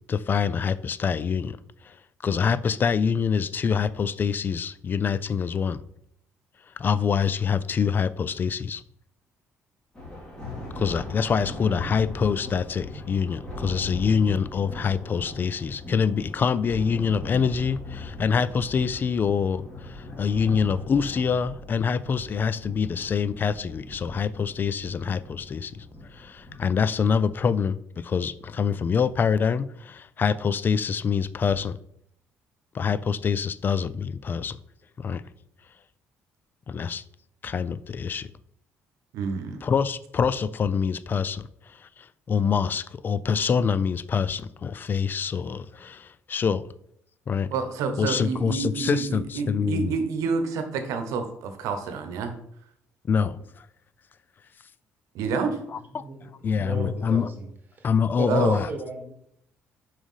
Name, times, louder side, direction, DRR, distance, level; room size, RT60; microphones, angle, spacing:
voice 1, 0.1-1.6 1.8-2.0 2.2-5.8 6.8-8.8 10.8-25.9 26.1-31.8 32.7-34.6 35.0-35.2 36.7-37.0 37.4-38.3 39.6-46.7 47.3-47.5 48.0-50.0 53.0-53.7 55.7-56.0 56.4-57.3 57.8-58.7, left 6 dB, 35° left, 0.3 m, -25 dB
Thunder, 9.9-27.6, left 2 dB, 15° left, 2.5 m, -39 dB
voice 2, 39.1-39.6 47.5-52.3 55.1-55.6 58.3-58.6, right 5 dB, 80° right, 0.9 m, -28 dB
voice 3, 56.0-57.5 57.7-57.9 58.2-59.1, right 1 dB, 35° right, 1.7 m, -35 dB
4.9 x 3.6 x 5.5 m
cardioid pair, 90°, 5 cm